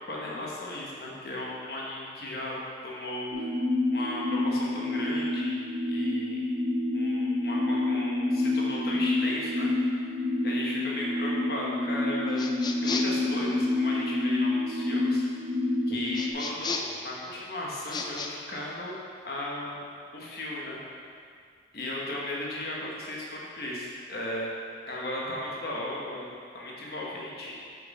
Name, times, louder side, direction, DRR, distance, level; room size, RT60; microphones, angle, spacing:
voice 1, 0.1-2.6 2.8-3.5 3.9-5.6 5.9-6.5 6.9-9.7 10.0-12.4 12.8-15.3 15.9-19.0 19.2-19.8 20.1-20.8 21.7-24.5 24.9-27.7, left 1 dB, 55° left, -4 dB, 1.2 m, -36 dB
sound 1, 3.3-16.3, left 2 dB, 75° right, 1.5 m, -28 dB
sound 2, 12.4-13.2 16.1-17.0 17.8-18.3, left 4 dB, 25° left, 0.3 m, -34 dB
6.6 x 6.3 x 4.1 m, 2.2 s
head